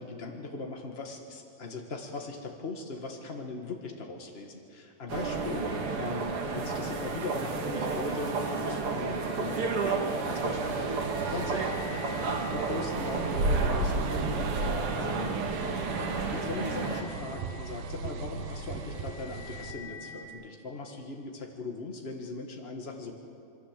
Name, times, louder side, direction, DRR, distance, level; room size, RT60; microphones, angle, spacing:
voice 1, 0.0-5.7 6.0-10.0 10.3-10.9 11.3-11.7 12.5-14.3 15.0-15.3 16.3-23.1, left 3 dB, 75° left, 2 dB, 0.5 m, -39 dB
sound 1, 5.1-17.0, right 3 dB, 45° right, 2.4 m, -31 dB
sound 2, 9.3-20.2, left 5 dB, 35° left, 2.2 m, -48 dB
sound 3, 10.2-19.7, right 7 dB, 75° right, 2.7 m, -40 dB
26.5 x 23.0 x 7.4 m, 2.6 s
omnidirectional pair, 4.0 m